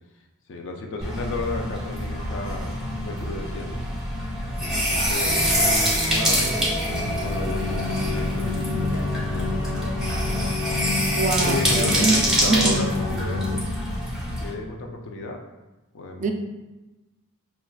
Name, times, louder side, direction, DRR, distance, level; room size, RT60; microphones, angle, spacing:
voice 1, 0.5-3.9 4.6-6.7 7.2-10.2 11.4-13.6 14.4-15.4 15.9-16.3, left 2 dB, 60° left, 2 dB, 0.4 m, -34 dB
sound 1, 1.0-14.5, equal, 5° right, 0.7 m, -26 dB
sound 2, 5.2-13.6, left 2 dB, 85° left, 1.3 m, -29 dB
voice 2, 11.2-12.2 12.5-12.8 16.2-16.3, right 3 dB, 35° right, 4 dB, 0.3 m, -24 dB
5.5 x 2.2 x 2.3 m, 1.1 s
head